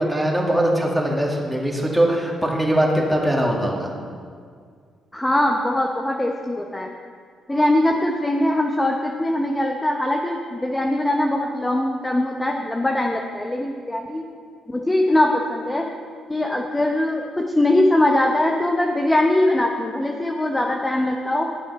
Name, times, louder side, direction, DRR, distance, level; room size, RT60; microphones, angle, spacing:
voice 1, 0.0-3.9, right 1 dB, 5° right, -2 dB, 2.1 m, -21 dB
voice 2, 5.1-6.9 7.5-14.3 14.7-15.9 16.3-21.5, left 1 dB, 15° left, 1 dB, 0.8 m, -21 dB
12.5 x 7.0 x 5.5 m, 2.1 s
cardioid pair, 90°, 0 cm